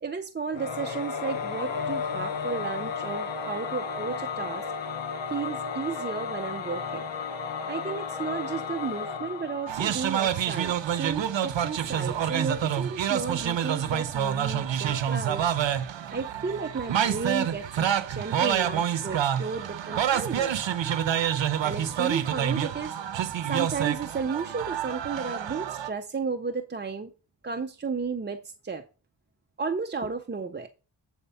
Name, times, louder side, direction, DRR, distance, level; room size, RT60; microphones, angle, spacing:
voice 1, 0.0-4.7 5.3-7.1 7.7-20.5 21.6-23.0 23.4-27.1 27.4-28.9 29.6-30.7, right 5 dB, 25° right, 0.5 m, -33 dB
Singing / Musical instrument, 0.5-10.6, left 5 dB, 90° left, 0.9 m, -33 dB
sound 1, 9.7-25.9, right 9 dB, 80° right, 0.7 m, -28 dB
8.2 x 4.3 x 5.4 m
wide cardioid pair, 120°, 44 cm